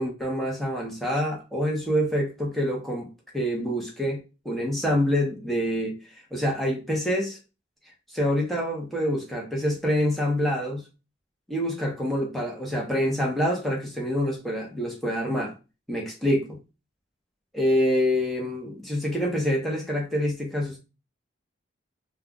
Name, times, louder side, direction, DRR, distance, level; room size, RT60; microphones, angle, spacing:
voice 1, 0.0-3.1 3.3-6.0 6.3-7.4 8.2-10.8 11.5-15.5 15.9-16.6 17.5-20.8, equal, ahead, 0.8 m, -26 dB
2.3 x 2.3 x 3.7 m
head